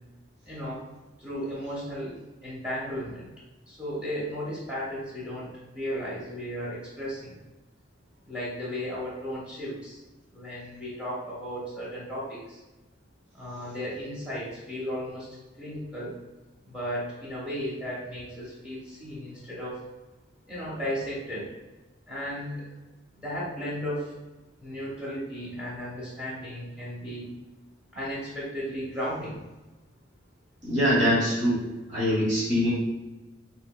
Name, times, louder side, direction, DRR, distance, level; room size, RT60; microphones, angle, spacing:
voice 1, 0.4-0.8 1.2-2.1 2.4-3.3 3.7-7.4 8.2-10.0 10.3-12.6 13.3-15.3 15.6-16.1 16.6-19.8 20.5-21.5 22.1-22.7 23.2-24.1 24.6-27.3 27.9-29.4, equal, 5° right, -8 dB, 1.1 m, -35 dB
voice 2, 30.6-32.7, equal, 40° right, -9 dB, 1.2 m, -24 dB
3.7 x 2.8 x 2.2 m, 1.1 s
head